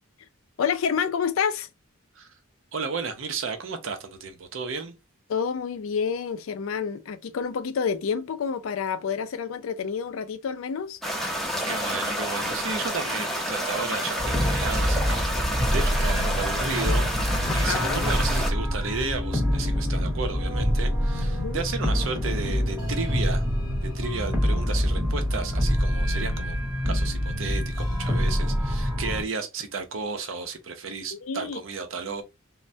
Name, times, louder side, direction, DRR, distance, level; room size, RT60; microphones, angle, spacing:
voice 1, 0.6-1.7 5.3-11.0 17.5-18.1 21.3-21.6 31.1-31.6, left 6 dB, 75° left, 0.4 m, -28 dB
voice 2, 2.7-4.9 11.7-23.4 23.8-26.6 26.8-32.2, right 4 dB, 65° right, 0.6 m, -33 dB
sound 1, 11.0-18.5, equal, ahead, 0.5 m, -29 dB
sound 2, 14.2-29.2, equal, 20° right, 0.9 m, -25 dB
3.2 x 2.1 x 2.6 m
head